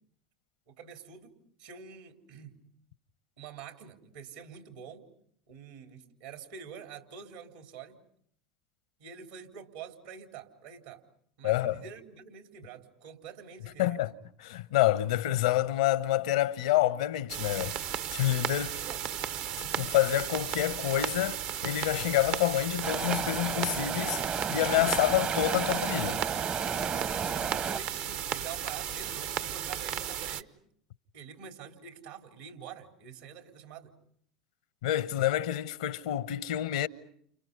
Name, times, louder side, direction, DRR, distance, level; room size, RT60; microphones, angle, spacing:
voice 1, 0.7-2.6 3.4-5.1 5.5-8.0 9.0-11.0 11.4-14.0 18.8-19.0 27.2-30.5 31.1-33.9, right 7 dB, 75° right, 3.8 m, -46 dB
voice 2, 11.4-11.8 13.8-14.1 14.4-17.8 18.1-18.8 19.8-26.2 34.8-36.9, left 14 dB, 75° left, 1.0 m, -28 dB
sound 1, 17.3-30.4, right 9 dB, 60° right, 1.1 m, -35 dB
sound 2, 22.8-27.8, right 6 dB, 35° right, 1.0 m, -33 dB
30.0 x 29.5 x 5.5 m
hypercardioid pair, 80°, 4 cm